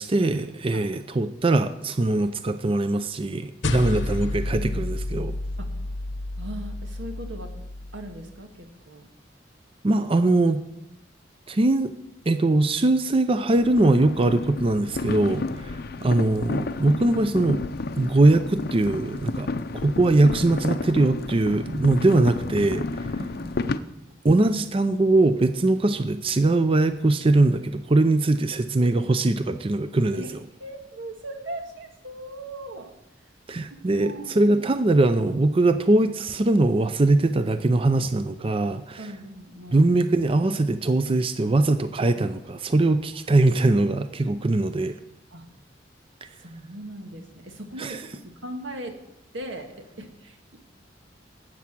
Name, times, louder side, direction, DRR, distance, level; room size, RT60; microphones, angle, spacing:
voice 1, 0.0-5.3 9.8-10.6 11.5-11.9 12.3-15.4 16.0-17.6 18.0-22.8 24.2-30.2 33.5-39.1 39.7-45.0 47.8-48.0, right 2 dB, 30° right, 10 dB, 0.5 m, -21 dB
sound 1, 3.6-8.3, left 2 dB, 80° left, 0.9 m, -30 dB
voice 2, 6.4-7.5 7.9-9.1 15.3-16.1 23.0-23.9 30.1-30.3 30.6-32.9 33.9-34.6 39.0-40.0 45.3-45.5 46.4-49.0 49.3-50.4, right 1 dB, 90° right, 4 dB, 1.8 m, -39 dB
sound 2, 13.6-23.8, left 3 dB, 55° left, 0.5 m, -31 dB
12.5 x 8.6 x 6.1 m, 0.86 s
head